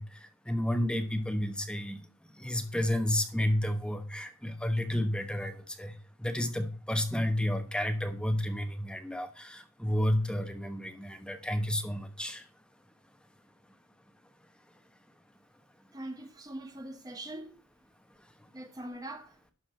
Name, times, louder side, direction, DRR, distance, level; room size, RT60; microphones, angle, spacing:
voice 1, 0.0-2.0 2.3-12.5, left 1 dB, 5° left, 1.0 m, -31 dB
voice 2, 15.9-17.6 18.5-19.4, right 1 dB, 20° right, 1.0 m, -42 dB
12.0 x 4.8 x 6.4 m
head